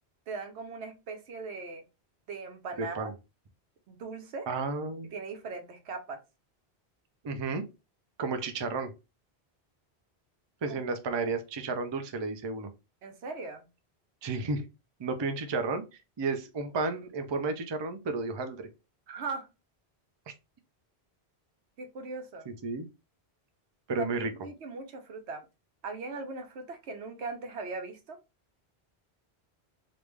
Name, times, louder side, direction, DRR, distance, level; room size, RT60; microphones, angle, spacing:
voice 1, 0.3-1.8 2.3-3.1 3.9-4.5 5.1-6.2 10.7-10.8 11.2-11.3 13.0-13.6 19.1-19.5 21.8-22.5 24.0-25.4 25.8-28.2, right 4 dB, 85° right, 7 dB, 1.0 m, -39 dB
voice 2, 2.8-3.1 4.5-5.1 7.2-7.6 8.2-8.9 10.6-12.7 14.2-14.6 15.0-15.8 16.2-18.7 20.3-20.4 22.5-22.9 23.9-24.3, right 3 dB, 40° right, 8 dB, 0.4 m, -32 dB
3.4 x 2.5 x 3.1 m, 0.27 s
omnidirectional pair, 1.1 m